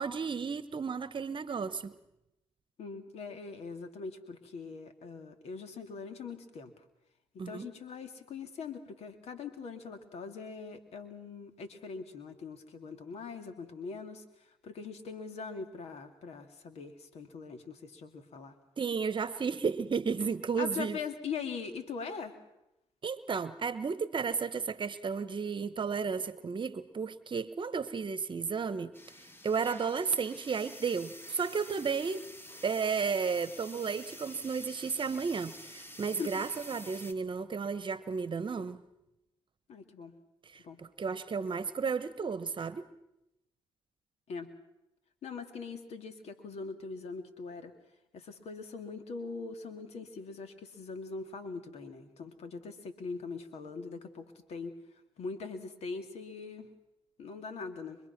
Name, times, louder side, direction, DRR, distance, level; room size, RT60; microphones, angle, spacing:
voice 1, 0.0-2.0 7.4-7.7 18.8-21.0 23.0-28.9 29.4-32.3 32.6-38.8 40.4-42.9, right 5 dB, 45° right, 14 dB, 1.1 m, -33 dB
voice 2, 2.8-6.7 7.5-14.2 14.6-18.5 20.6-22.4 36.2-36.3 39.7-40.2 40.6-40.8 44.3-44.6 45.2-47.7 48.1-54.8 55.2-56.7 57.2-58.0, left 5 dB, 70° left, 7 dB, 2.5 m, -42 dB
sound 1, 28.9-37.1, left 1 dB, 20° left, 2.5 m, -49 dB
25.5 x 22.0 x 6.0 m, 0.89 s
supercardioid pair, 50°, 11 cm